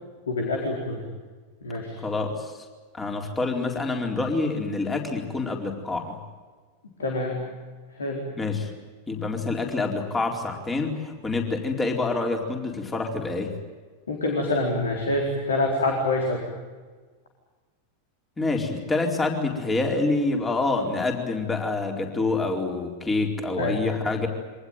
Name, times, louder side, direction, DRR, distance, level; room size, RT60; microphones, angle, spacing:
voice 1, 0.3-1.0 1.6-1.9 7.0-7.4 8.0-8.2 14.1-16.4 23.6-23.8, left 2 dB, 70° left, 1 dB, 4.4 m, -26 dB
voice 2, 2.0-2.5 2.9-6.2 8.4-8.7 9.1-13.5 18.4-24.3, left 3 dB, 15° left, 2 dB, 4.3 m, -27 dB
25.5 x 19.5 x 9.2 m, 1.4 s
figure-of-eight pair, 90°, 0 cm